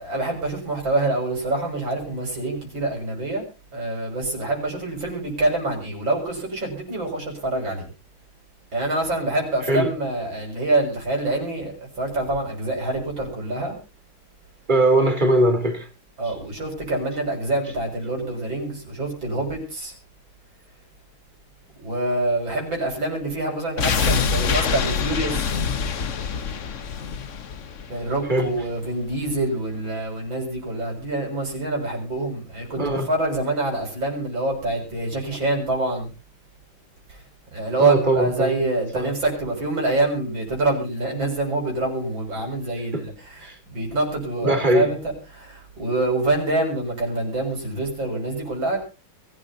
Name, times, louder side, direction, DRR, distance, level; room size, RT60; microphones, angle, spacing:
voice 1, 0.0-3.4 3.7-7.9 8.7-13.8 16.2-20.0 21.8-25.5 27.9-36.1 37.1-37.2 37.5-45.0 45.3-48.8, right 2 dB, 65° right, 7.4 m, -26 dB
voice 2, 14.7-15.9 28.3-28.5 32.8-33.1 37.8-38.5 43.4-43.5 44.4-44.9, right 1 dB, 20° right, 3.4 m, -20 dB
sound 1, 23.8-28.7 29.0-29.1, left 6 dB, 45° left, 1.2 m, -25 dB
23.0 x 13.0 x 2.8 m
omnidirectional pair, 2.3 m